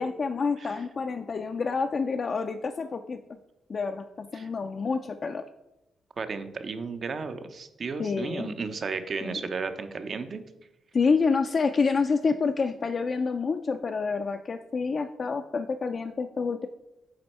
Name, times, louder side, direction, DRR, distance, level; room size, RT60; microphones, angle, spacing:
voice 1, 0.0-3.2 3.7-5.4 8.0-8.6 9.2-9.4 10.9-16.7, left 4 dB, 50° left, 5 dB, 0.4 m, -28 dB
voice 2, 6.2-10.4, right 4 dB, 50° right, 9 dB, 0.6 m, -34 dB
7.7 x 4.3 x 4.3 m, 0.92 s
cardioid pair, 80°, 0 cm